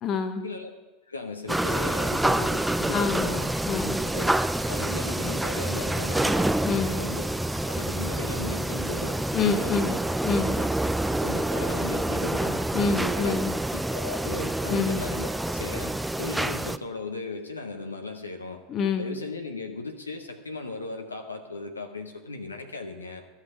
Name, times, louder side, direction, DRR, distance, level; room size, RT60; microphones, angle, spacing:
voice 1, 0.0-0.4 2.9-3.3 3.7-4.0 6.6-7.0 9.3-10.0 10.2-10.6 12.7-13.5 14.7-15.0 18.7-19.1, left 5 dB, 40° left, 8 dB, 1.1 m, -26 dB
voice 2, 1.1-3.5 4.1-4.3 4.6-6.6 6.9-7.3 7.7-9.2 9.6-10.0 10.6-10.7 11.2-12.6 13.2-13.4 13.7-18.6 19.0-23.3, left 3 dB, 90° left, 4 dB, 0.9 m, -37 dB
sound 1, 1.5-16.8, right 1 dB, 5° right, 0.4 m, -27 dB
13.0 x 5.8 x 8.2 m, 1.1 s
figure-of-eight pair, 80°, 0 cm